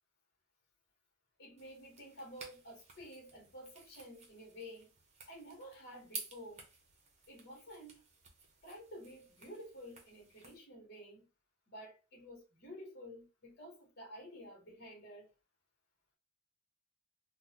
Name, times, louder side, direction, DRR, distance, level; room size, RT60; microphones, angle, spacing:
voice 1, 1.4-4.9 5.3-6.7 7.3-8.0 8.6-11.3 11.7-15.3, equal, 50° left, 1.2 m, -51 dB
sound 1, 1.6-10.6, right 4 dB, 35° right, 0.8 m, -53 dB
3.8 x 2.2 x 2.8 m
head